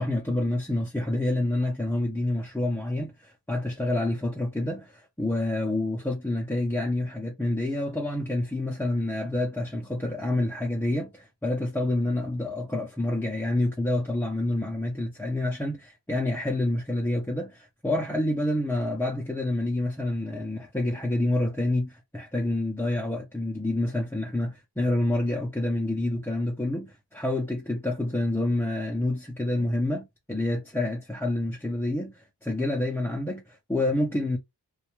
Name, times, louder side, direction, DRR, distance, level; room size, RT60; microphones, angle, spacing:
voice 1, 0.0-34.4, left 1 dB, 5° left, 0.4 m, -28 dB
2.2 x 2.1 x 2.9 m
wide cardioid pair, 115°, 41 cm